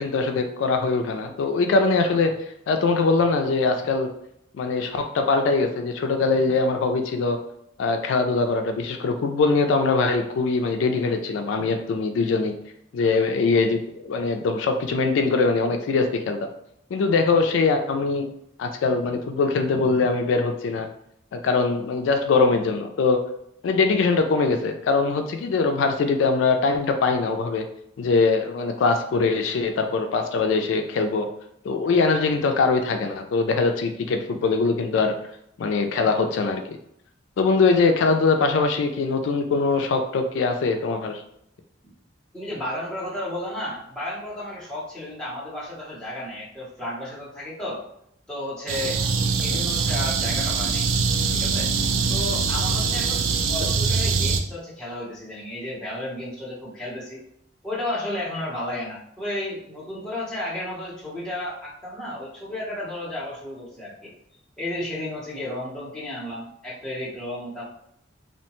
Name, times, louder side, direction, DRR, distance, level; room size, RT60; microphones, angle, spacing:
voice 1, 0.0-2.3 2.7-4.1 4.5-7.4 7.8-12.5 12.9-16.5 16.9-18.3 18.6-20.9 21.3-23.2 23.6-27.6 28.0-31.3 31.6-35.1 35.6-36.8 37.4-41.2 49.5-49.6 53.6-53.7, left 4 dB, 75° left, 5 dB, 0.3 m, -22 dB
voice 2, 42.3-47.8 48.3-49.0 49.4-50.8 51.3-51.7 52.1-57.2 57.6-64.1 64.6-67.6, left 1 dB, 5° left, -8 dB, 0.8 m, -33 dB
sound 1, 48.7-54.4, right 5 dB, 85° right, 0.3 m, -23 dB
2.8 x 2.1 x 2.9 m, 0.74 s
head